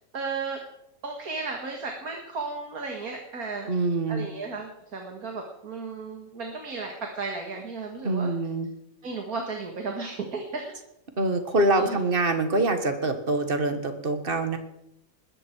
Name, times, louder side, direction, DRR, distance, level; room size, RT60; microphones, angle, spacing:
voice 1, 0.1-0.6 1.0-3.7 4.1-8.4 9.0-10.6 11.7-12.0, right 4 dB, 90° right, 2 dB, 2.4 m, -34 dB
voice 2, 3.7-4.3 8.0-8.7 11.2-14.6, right 2 dB, 40° right, 7 dB, 1.9 m, -25 dB
20.5 x 14.0 x 4.7 m, 0.84 s
omnidirectional pair, 1.5 m